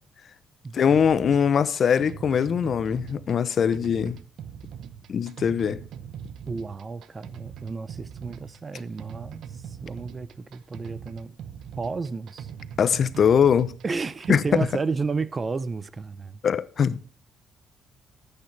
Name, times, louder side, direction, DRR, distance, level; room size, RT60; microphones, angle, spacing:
voice 1, 0.7-4.2 5.1-5.8 12.8-13.7 14.3-14.7 16.4-17.1, left 7 dB, 55° left, 0.7 m, -22 dB
sound 1, 0.9-14.8, right 8 dB, 75° right, 0.7 m, -41 dB
voice 2, 6.5-11.3 11.8-12.5 13.8-16.4, right 4 dB, 30° right, 0.7 m, -32 dB
14.5 x 8.9 x 3.3 m
cardioid pair, 90°, 0 cm